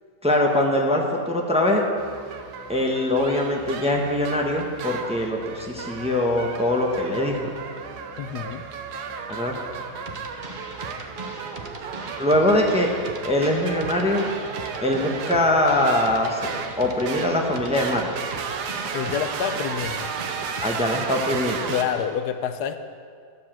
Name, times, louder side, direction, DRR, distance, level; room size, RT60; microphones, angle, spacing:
voice 1, 0.2-1.8 2.7-7.5 9.3-9.6 12.2-12.9 13.2-14.3 14.8-16.4 16.8-18.1 20.6-21.7, left 1 dB, 5° right, 0 dB, 1.0 m, -22 dB
sound 1, 2.0-21.8, right 6 dB, 80° right, 1.4 m, -34 dB
voice 2, 8.2-8.6 18.9-20.1 21.7-22.8, left 8 dB, 80° left, 9 dB, 1.2 m, -27 dB
sound 2, 10.1-22.1, right 2 dB, 35° right, 1.0 m, -39 dB
12.5 x 7.4 x 7.5 m, 2.1 s
omnidirectional pair, 1.7 m